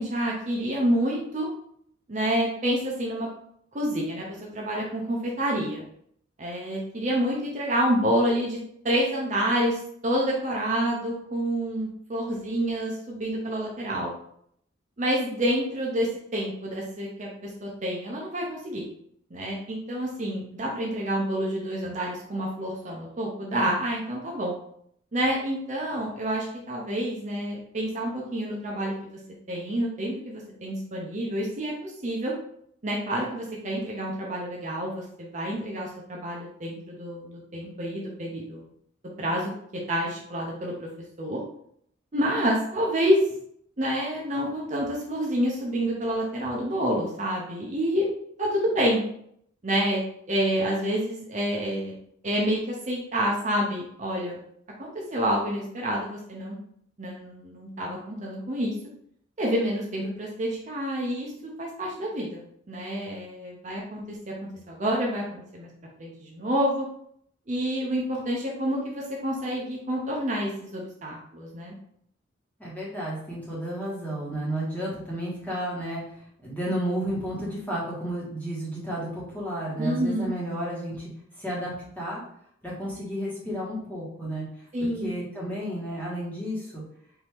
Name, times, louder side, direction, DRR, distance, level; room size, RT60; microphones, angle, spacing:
voice 1, 0.0-1.5 2.1-3.3 3.7-5.8 6.4-8.6 8.8-14.1 15.0-18.8 19.3-24.5 25.1-29.2 29.5-32.3 32.8-38.7 39.2-39.5 39.9-40.9 41.2-41.4 42.1-43.2 43.8-48.1 48.4-49.0 49.6-50.0 50.3-51.9 52.2-54.4 54.8-56.6 57.0-58.8 59.4-62.4 62.7-65.7 66.0-66.9 67.5-71.7 79.8-80.3 84.7-85.1, equal, 40° right, -2 dB, 0.7 m, -28 dB
voice 2, 72.6-76.0 76.4-81.1 81.4-82.2 82.6-84.4 84.8-86.8, right 1 dB, 10° left, -6 dB, 1.4 m, -32 dB
4.6 x 2.8 x 3.4 m, 0.68 s
head